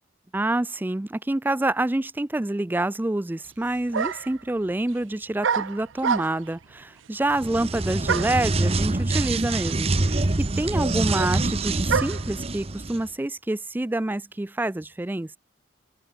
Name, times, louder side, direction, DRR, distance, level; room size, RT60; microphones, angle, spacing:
voice 1, 0.3-10.3 10.6-15.4, right 1 dB, 10° right, 0.3 m, -27 dB
sound 1, 3.4-3.5 3.9-4.4 5.4-6.6 8.1-8.5 9.4-9.5 9.7-12.3, right 6 dB, 80° right, 0.6 m, -28 dB
sound 2, 7.3-13.0, right 2 dB, 30° right, 0.9 m, -25 dB
open air
head